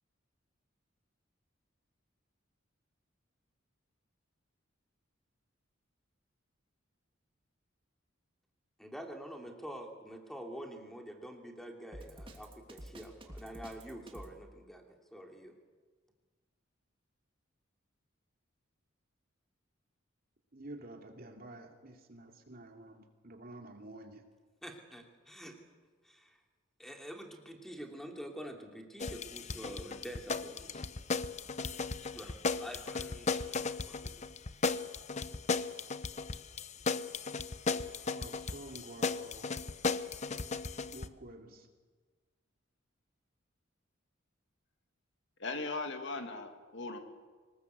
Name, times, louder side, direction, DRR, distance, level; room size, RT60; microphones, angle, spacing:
voice 1, 8.8-15.5 24.6-25.6 26.0-26.4 26.8-30.9 32.0-34.2, equal, ahead, 2 dB, 2.9 m, -47 dB
Drum kit, 11.9-14.3, right 1 dB, 25° right, 3.0 m, -48 dB
voice 2, 20.5-24.2 38.1-39.5 40.9-41.7, right 1 dB, 45° right, 3 dB, 2.7 m, -50 dB
sound 1, 29.0-41.1, left 4 dB, 35° left, 0.8 m, -36 dB
voice 3, 45.4-47.0, left 3 dB, 60° left, 6 dB, 2.4 m, -38 dB
24.5 x 20.0 x 8.2 m, 1.4 s
head